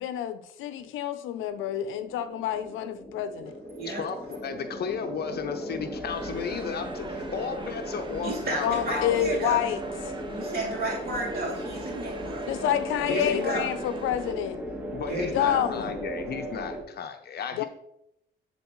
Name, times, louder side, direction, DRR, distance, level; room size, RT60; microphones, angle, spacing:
voice 1, 0.0-3.5 8.6-9.8 12.5-14.6 15.3-15.9 17.5-17.6, left 10 dB, 90° left, 12 dB, 0.6 m, -28 dB
sound 1, 1.3-16.8, equal, 10° right, 1.5 m, -37 dB
voice 2, 3.8-9.4 13.1-13.6 14.9-17.6, left 6 dB, 55° left, 7 dB, 0.7 m, -34 dB
sound 2, 6.1-14.3, right 3 dB, 25° right, 0.8 m, -44 dB
voice 3, 8.2-9.6 10.3-12.5 13.1-13.7 15.1-15.6, right 2 dB, 50° right, -2 dB, 2.7 m, -32 dB
10.5 x 4.1 x 3.1 m, 0.77 s
cardioid pair, 90°, 20 cm